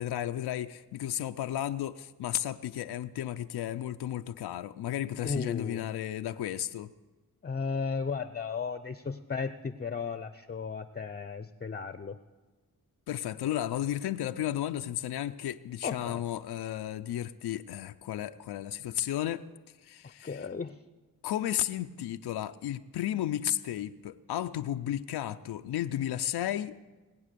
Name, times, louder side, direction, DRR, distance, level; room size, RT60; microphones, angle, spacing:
voice 1, 0.0-6.9 13.1-19.4 19.8-20.5 21.2-26.8, left 12 dB, 85° left, 8 dB, 0.6 m, -33 dB
voice 2, 5.2-5.8 7.4-12.2 15.8-16.2 20.2-20.8, left 5 dB, 25° left, 12 dB, 0.7 m, -35 dB
20.5 x 8.3 x 6.7 m, 1.2 s
cardioid pair, 55°, 38 cm